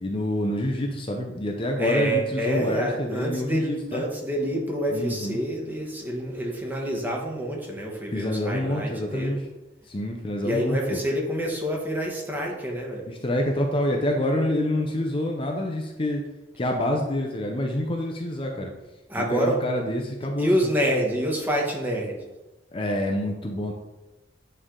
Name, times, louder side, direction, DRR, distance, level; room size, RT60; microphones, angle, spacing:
voice 1, 0.0-4.0 4.9-5.4 8.1-9.4 9.9-11.0 13.1-16.2 16.6-18.7 19.2-20.5 22.7-23.7, left 1 dB, 30° left, 2 dB, 0.6 m, -27 dB
voice 2, 1.8-9.4 10.4-13.1 19.1-19.6 20.4-22.2, equal, 10° right, -1 dB, 1.1 m, -27 dB
8.6 x 3.3 x 3.7 m, 1.1 s
head